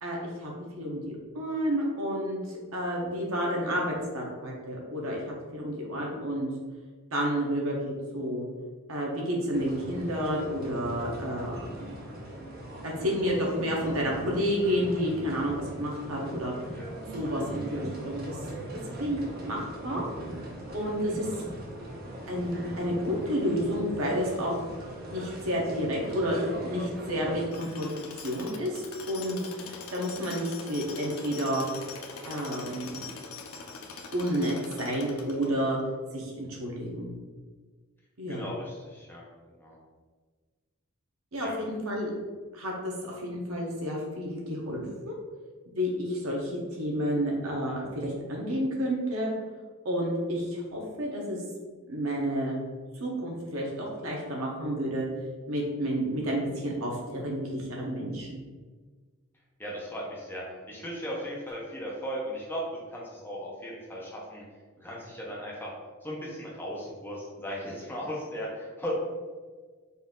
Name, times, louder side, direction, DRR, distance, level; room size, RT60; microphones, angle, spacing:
voice 1, 0.0-6.5 7.1-8.4 8.9-11.9 12.8-16.5 17.1-18.4 19.0-20.0 20.7-21.3 22.3-24.6 25.1-27.9 28.2-29.4 29.9-31.7 32.2-33.0 34.1-35.8 36.1-37.1 38.2-38.5 41.3-42.1 42.5-45.1 45.7-49.3 49.8-51.4 51.9-52.6 53.0-55.0 55.5-58.4, equal, 75° right, -2 dB, 1.0 m, -30 dB
sound 1, 9.5-27.5, right 1 dB, 45° right, 0.7 m, -41 dB
sound 2, 13.9-14.7 15.1-15.8 16.3-17.1 17.5-18.3 18.7-19.5 20.0-20.7 21.1-21.9 22.3-23.2 23.6-24.4, right 1 dB, 10° right, 1.1 m, -44 dB
Tools, 27.5-35.8, left 4 dB, 80° left, 0.5 m, -43 dB
voice 2, 38.3-39.2 39.6-39.8 41.4-41.6 59.6-62.6 62.9-64.4 64.8-65.7 66.0-68.9, equal, 10° left, -4 dB, 0.7 m, -37 dB
4.2 x 2.6 x 3.7 m, 1.4 s
head